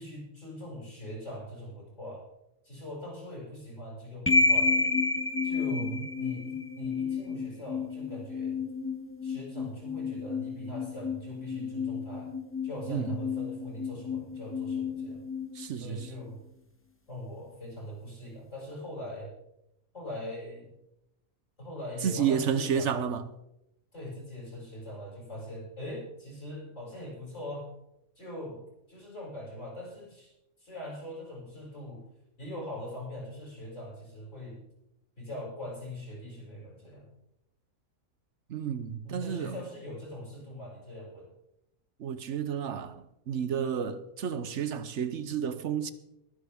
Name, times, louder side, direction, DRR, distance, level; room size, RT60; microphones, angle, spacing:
voice 1, 0.0-2.2 2.6-4.8 5.4-8.6 9.2-12.3 12.6-15.2 15.7-16.4 17.1-19.3 19.9-20.7 21.6-22.9 23.9-27.7 28.2-28.6 28.9-30.3 30.6-32.0 32.4-34.6 35.2-37.1 39.0-41.3, left 1 dB, 55° left, 7.2 m, -41 dB
sound 1, 4.3-16.3, left 4 dB, 10° left, 0.8 m, -31 dB
voice 2, 5.7-6.1 12.9-13.2 15.5-16.1 22.0-23.2 38.5-39.6 42.0-45.9, right 8 dB, 60° right, 1.0 m, -31 dB
22.5 x 10.0 x 3.6 m
omnidirectional pair, 1.5 m